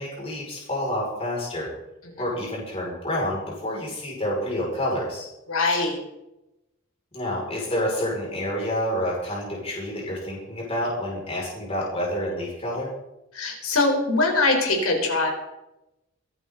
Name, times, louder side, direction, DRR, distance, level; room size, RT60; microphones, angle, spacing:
voice 1, 0.0-1.7 2.2-5.3 7.1-12.9, left 1 dB, 30° left, -4 dB, 5.9 m, -28 dB
voice 2, 5.5-6.0 13.3-15.3, left 2 dB, 85° left, 2 dB, 4.2 m, -22 dB
23.5 x 11.0 x 4.0 m, 0.92 s
head